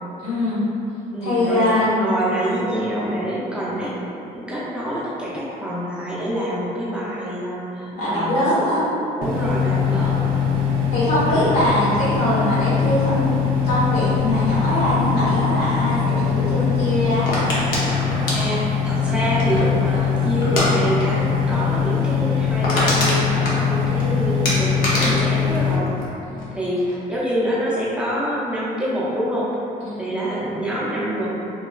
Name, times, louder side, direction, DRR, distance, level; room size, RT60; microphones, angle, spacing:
voice 1, 0.2-0.6 1.2-1.9 7.9-8.9 10.9-13.4 13.6-17.3 26.2-26.6 29.8-30.1, left 1 dB, 85° left, -11 dB, 1.4 m, -22 dB
voice 2, 1.1-3.9 4.3-8.5 9.2-10.3 18.3-25.9 26.5-29.5 30.0-31.3, right 1 dB, 5° right, -9 dB, 0.5 m, -26 dB
sound 1, 9.2-25.8, left 6 dB, 70° right, 0.4 m, -22 dB
sound 2, 17.3-19.8 20.4-20.7 21.0-21.2 21.5-21.6 22.0-22.1 22.4-24.0 24.4-26.5 26.8-27.2, left 1 dB, 65° left, 0.7 m, -24 dB
2.9 x 2.2 x 2.4 m, 2.8 s
cardioid pair, 120°, 15 cm